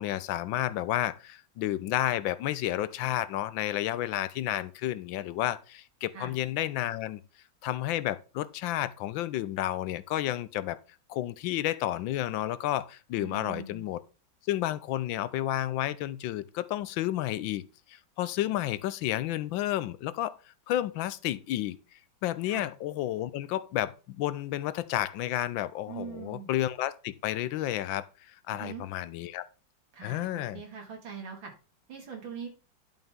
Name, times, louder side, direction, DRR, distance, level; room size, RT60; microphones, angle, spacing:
voice 1, 0.0-7.2 7.6-10.8 11.1-14.0 14.5-17.6 17.9-20.4 20.7-21.8 22.2-29.4 30.0-30.6, left 13 dB, 80° left, 1.4 m, -31 dB
voice 2, 13.2-13.9 22.5-22.7 25.9-26.5 28.5-28.8 29.9-31.5 31.9-32.5, right 6 dB, 85° right, 2.9 m, -42 dB
11.0 x 5.5 x 3.6 m
omnidirectional pair, 2.1 m